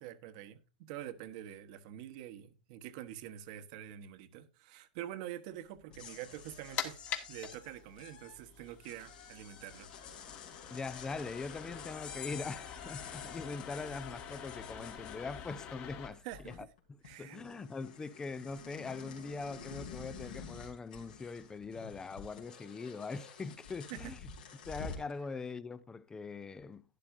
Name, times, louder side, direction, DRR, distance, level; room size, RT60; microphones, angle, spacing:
voice 1, 0.0-9.9 16.2-16.7 17.0-17.4 23.9-24.1, right 12 dB, 55° right, 1.2 m, -46 dB
sound 1, 5.8-15.8 16.1-16.8 17.0-25.1, left 6 dB, 75° left, 3.2 m, -49 dB
sound 2, 6.4-16.1, left 8 dB, 40° left, 1.8 m, -46 dB
voice 2, 10.7-24.2 24.7-26.8, left 4 dB, 15° left, 0.6 m, -42 dB
11.5 x 11.0 x 2.6 m
hypercardioid pair, 120°, 5 cm